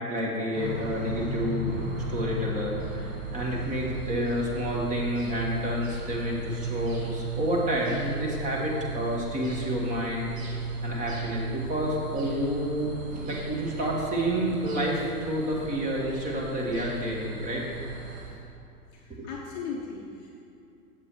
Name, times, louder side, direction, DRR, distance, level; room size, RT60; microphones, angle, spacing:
voice 1, 0.1-10.3 10.8-17.7 19.1-19.3, equal, 15° right, -2 dB, 1.1 m, -29 dB
sound 1, 0.5-18.2, right 2 dB, 60° right, 2.0 m, -35 dB
voice 2, 18.9-20.3, left 5 dB, 25° left, -2 dB, 0.7 m, -38 dB
7.3 x 6.8 x 4.3 m, 2.6 s
figure-of-eight pair, 110°, 45 cm